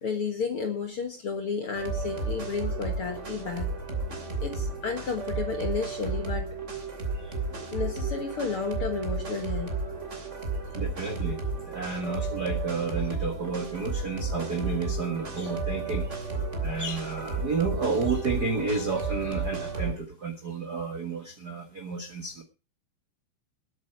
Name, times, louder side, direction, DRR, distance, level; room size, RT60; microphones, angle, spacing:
voice 1, 0.0-3.7 4.4-6.5 7.7-9.7, left 5 dB, 55° left, 5 dB, 1.6 m, -32 dB
sound 1, 1.7-19.9, right 3 dB, 25° right, 2.1 m, -33 dB
voice 2, 10.7-11.4 11.7-16.2 16.6-22.4, right 4 dB, 85° right, 5 dB, 0.8 m, -31 dB
19.5 x 8.5 x 4.6 m, 0.31 s
omnidirectional pair, 4.5 m